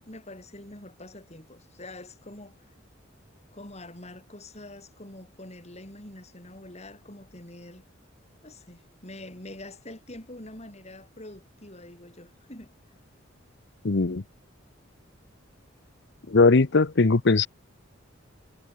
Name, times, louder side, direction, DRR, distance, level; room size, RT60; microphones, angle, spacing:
voice 1, 0.0-2.7 3.5-7.8 8.4-13.0, left 1 dB, 35° left, 5.9 m, -45 dB
voice 2, 13.8-14.2 16.3-17.5, left 3 dB, 60° left, 0.8 m, -20 dB
head